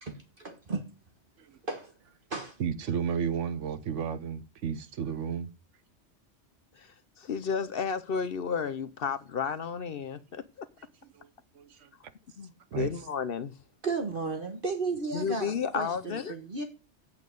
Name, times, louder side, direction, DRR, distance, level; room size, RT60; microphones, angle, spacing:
voice 1, 0.0-0.9 1.7-1.9 2.3-2.6 13.8-16.6, right 4 dB, 50° right, 1.5 m, -34 dB
voice 2, 2.6-5.5 11.2-11.3 11.6-11.9 12.7-12.9, right 7 dB, 85° right, 1.2 m, -32 dB
voice 3, 6.8-10.7 12.4-13.5 15.1-16.4, left 6 dB, 55° left, 0.9 m, -32 dB
8.5 x 8.4 x 5.3 m
omnidirectional pair, 1.2 m